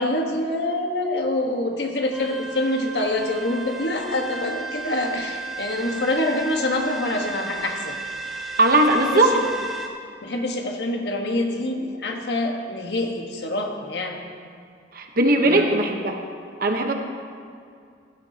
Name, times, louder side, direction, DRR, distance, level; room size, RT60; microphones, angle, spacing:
voice 1, 0.0-8.0 9.0-9.5 10.2-14.2 15.4-15.8, left 1 dB, 70° left, 2 dB, 1.4 m, -26 dB
sound 1, 2.1-9.9, right 3 dB, ahead, 1.0 m, -34 dB
voice 2, 8.6-9.3 14.9-16.2 16.6-16.9, right 2 dB, 55° right, 3 dB, 1.1 m, -19 dB
15.5 x 13.5 x 2.9 m, 2.3 s
head